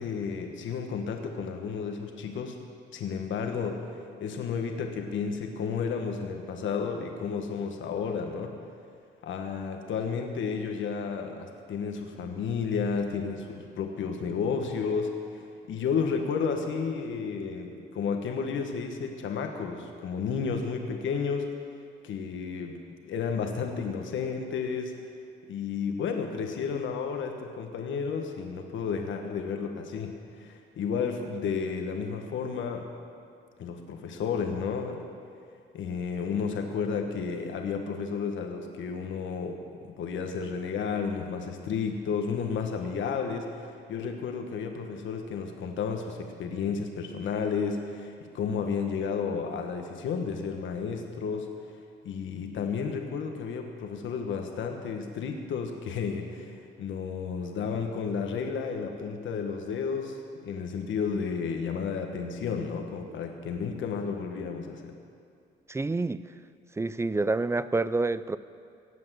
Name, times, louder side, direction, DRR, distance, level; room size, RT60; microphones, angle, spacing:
voice 1, 0.0-2.5 2.9-3.8 4.2-8.5 9.2-21.5 22.0-24.9 25.5-32.9 33.6-35.0 35.7-39.6 40.0-51.5 52.0-60.2 60.4-64.9, left 6 dB, 75° left, 4 dB, 1.5 m, -32 dB
voice 2, 65.7-66.2 66.8-68.4, right 3 dB, 15° right, 16 dB, 0.4 m, -27 dB
17.5 x 7.7 x 7.6 m, 2.3 s
cardioid pair, 90°, 20 cm